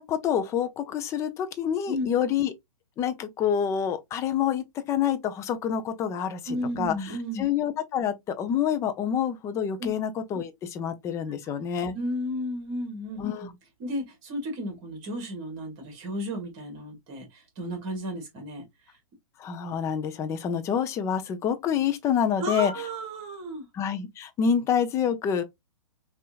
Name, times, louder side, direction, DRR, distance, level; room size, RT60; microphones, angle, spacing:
voice 1, 0.0-2.5 3.0-6.9 7.4-12.0 13.2-13.5 19.4-22.7 23.7-25.4, left 8 dB, 15° left, 0.5 m, -27 dB
voice 2, 6.5-7.4 9.8-9.9 11.9-13.5 13.8-18.6 22.4-23.6, equal, 30° right, 1.6 m, -33 dB
5.4 x 2.5 x 2.4 m
figure-of-eight pair, 115°, 18 cm